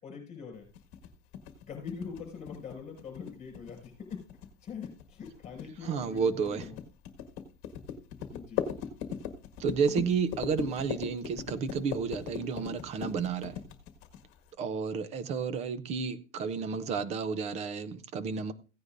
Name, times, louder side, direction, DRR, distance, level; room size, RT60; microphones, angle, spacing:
voice 1, 0.0-0.7 1.7-4.3 4.6-6.8 8.3-8.6, left 6 dB, 20° left, 5.8 m, -43 dB
sound 1, 0.7-14.5, left 9 dB, 40° left, 1.7 m, -39 dB
voice 2, 5.8-6.7 9.6-13.6 14.6-18.5, right 5 dB, 20° right, 0.5 m, -31 dB
16.0 x 9.5 x 2.5 m
supercardioid pair, 160°, 36 cm